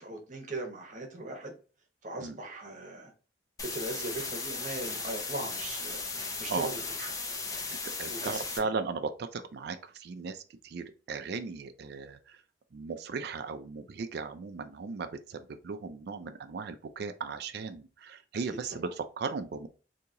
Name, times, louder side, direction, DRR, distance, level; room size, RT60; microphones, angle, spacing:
voice 1, 0.0-1.5 2.0-3.1 3.6-6.0 6.4-7.1 8.1-8.7 18.7-18.8, right 2 dB, 45° right, 0.9 m, -39 dB
sound 1, 3.6-8.6, left 3 dB, 20° left, 0.6 m, -36 dB
voice 2, 7.8-12.4 12.7-19.7, right 4 dB, 60° right, 0.4 m, -37 dB
2.9 x 2.8 x 3.6 m
head